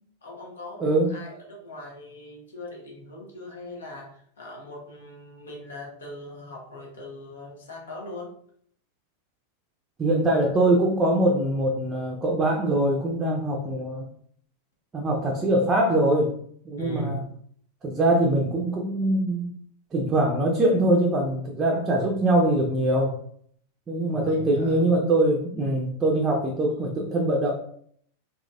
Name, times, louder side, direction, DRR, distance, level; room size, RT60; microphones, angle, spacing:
voice 1, 0.2-8.3 16.8-17.2 24.1-24.9, left 1 dB, 65° left, -2 dB, 1.2 m, -40 dB
voice 2, 0.8-1.1 10.0-14.1 14.9-16.3 16.6-17.2 17.8-19.5 19.9-23.2 23.9-27.5, right 1 dB, 20° right, -1 dB, 0.6 m, -23 dB
3.8 x 2.9 x 2.3 m, 0.63 s
figure-of-eight pair, 90°, 0 cm